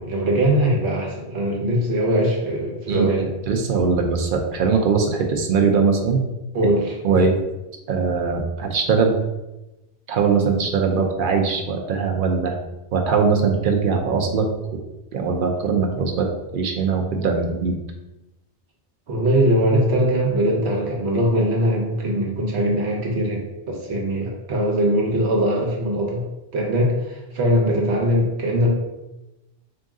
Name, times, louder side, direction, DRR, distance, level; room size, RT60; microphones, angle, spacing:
voice 1, 0.0-3.3 6.5-7.2 19.1-26.2 26.5-28.7, right 1 dB, 75° right, -1 dB, 1.1 m, -21 dB
voice 2, 2.9-6.2 7.0-7.4 7.9-9.1 10.1-12.5 12.9-14.5 15.1-16.3 16.5-17.8, right 5 dB, 60° right, 2 dB, 0.7 m, -21 dB
3.8 x 2.6 x 3.6 m, 0.98 s
omnidirectional pair, 1.1 m